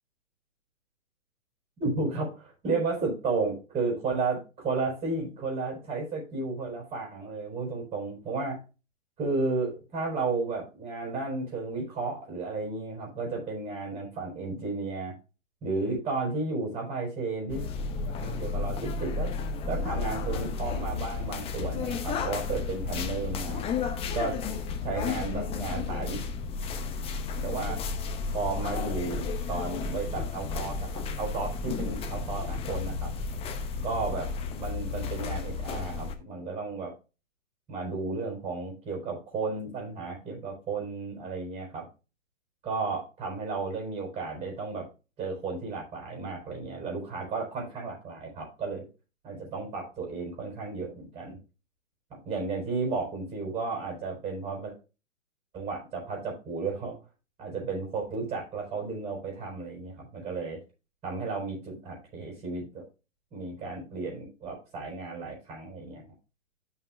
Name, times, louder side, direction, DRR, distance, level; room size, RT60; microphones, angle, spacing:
voice 1, 1.8-8.6 9.2-15.1 15.6-17.6 18.2-19.3 19.6-23.6 24.1-24.4 24.8-26.2 27.4-27.8 28.3-33.1 33.8-34.3 34.5-36.9 37.7-41.8 42.6-44.8 45.2-48.8 49.2-51.4 52.1-54.7 55.5-56.9 57.4-60.6 61.0-62.8 63.3-66.0, right 3 dB, 15° right, -1 dB, 5.2 m, -33 dB
sound 1, 17.5-36.1, left 4 dB, 15° left, 1.0 m, -33 dB
13.0 x 6.0 x 2.5 m, 0.30 s
figure-of-eight pair, 125°, 38 cm